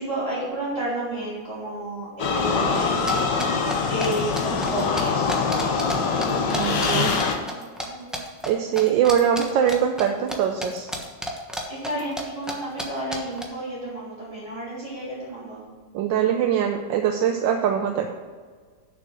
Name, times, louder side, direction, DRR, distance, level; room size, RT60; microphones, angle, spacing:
voice 1, 0.0-3.6 3.9-7.6 7.8-8.1 11.7-15.6, right 1 dB, 30° right, -9 dB, 3.3 m, -32 dB
sound 1, 2.2-7.4, left 5 dB, 65° left, 1.5 m, -24 dB
sound 2, 3.1-6.0 6.2-7.9 8.1-8.5 8.8-10.4 10.6-12.2 12.5-12.6 12.8-12.9 13.1-13.4, equal, ahead, 0.6 m, -31 dB
voice 2, 6.6-7.1 8.5-10.9 15.9-18.1, right 9 dB, 75° right, 4 dB, 1.3 m, -22 dB
6.9 x 6.5 x 6.4 m, 1.5 s
omnidirectional pair, 2.2 m